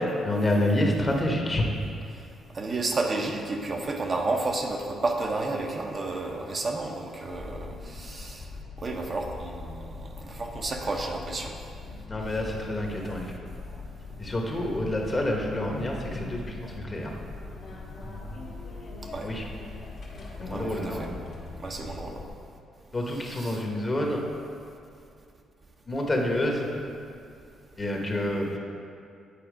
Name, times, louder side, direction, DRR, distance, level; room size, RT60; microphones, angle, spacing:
voice 1, 0.2-1.7 12.1-13.4 13.7-13.8 14.2-17.2 19.2-19.4 20.4-21.1 22.9-24.2 25.9-26.7 27.8-28.6, left 1 dB, 30° left, 0 dB, 1.2 m, -28 dB
voice 2, 2.5-8.5 8.8-11.6 19.1-19.3 20.5-21.0 21.6-22.2 23.3-23.6, right 2 dB, 40° right, 1 dB, 0.7 m, -31 dB
sound 1, 7.3-22.3, left 3 dB, 55° left, 1.6 m, -41 dB
8.6 x 4.3 x 5.0 m, 2.4 s
cardioid pair, 90°, 0 cm